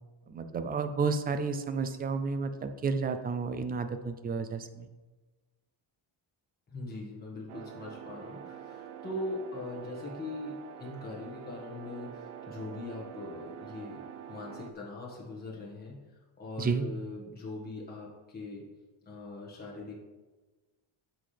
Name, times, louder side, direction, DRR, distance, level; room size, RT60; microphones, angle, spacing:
voice 1, 0.3-4.9 16.6-16.9, right 4 dB, 20° right, 9 dB, 0.3 m, -31 dB
voice 2, 6.7-16.0 16.4-18.7 19.0-20.0, left 2 dB, 20° left, -4 dB, 1.6 m, -41 dB
sound 1, 7.5-14.7, right 9 dB, 85° right, 0.8 m, -46 dB
12.5 x 5.8 x 3.4 m, 1.2 s
cardioid pair, 180°, 49 cm